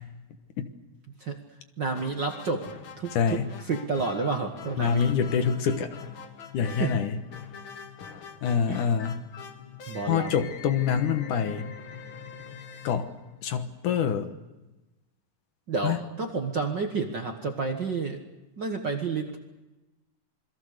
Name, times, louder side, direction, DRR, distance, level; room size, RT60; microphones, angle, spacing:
voice 1, 1.8-2.7 3.0-3.4 3.6-5.1 6.6-7.0 8.7-8.8 9.9-10.3 15.7-18.2 18.6-19.4, right 4 dB, 45° right, 3 dB, 1.5 m, -30 dB
sound 1, 1.9-13.8, left 6 dB, 50° left, 1.6 m, -43 dB
voice 2, 3.1-3.5 4.8-5.9 6.5-7.2 8.4-9.2 10.1-11.7 12.8-13.1 13.4-14.3 15.8-16.0, left 7 dB, 70° left, 8 dB, 2.7 m, -26 dB
27.5 x 22.0 x 6.7 m, 1.1 s
omnidirectional pair, 3.9 m